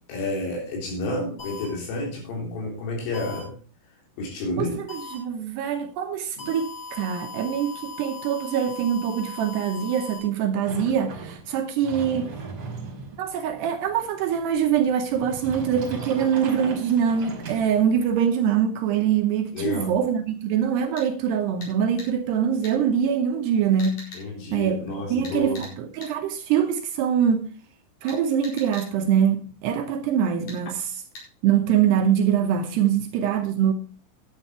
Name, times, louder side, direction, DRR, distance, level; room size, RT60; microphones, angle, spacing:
voice 1, 0.1-3.5 4.2-4.8 6.4-6.5 19.5-20.0 24.1-25.6, left 2 dB, 80° left, 6.1 m, -30 dB
sound 1, 1.4-1.6 3.1-3.4 4.9-5.1 6.4-10.2, left 4 dB, 25° left, 5.6 m, -39 dB
voice 2, 4.6-12.3 13.2-24.0 24.5-27.4 28.0-30.9 31.4-33.7, right 8 dB, 75° right, 2.6 m, -24 dB
Sliding door, 10.7-18.1, right 4 dB, 40° right, 2.4 m, -39 dB
sound 2, 21.0-21.1 21.6-21.7 22.0-22.1 22.6-22.8 23.8-24.2 25.2-25.8 26.0-26.1 28.1-28.9 30.5-30.6 31.2-31.3, left 2 dB, 45° left, 5.8 m, -41 dB
11.0 x 9.0 x 4.4 m
omnidirectional pair, 5.6 m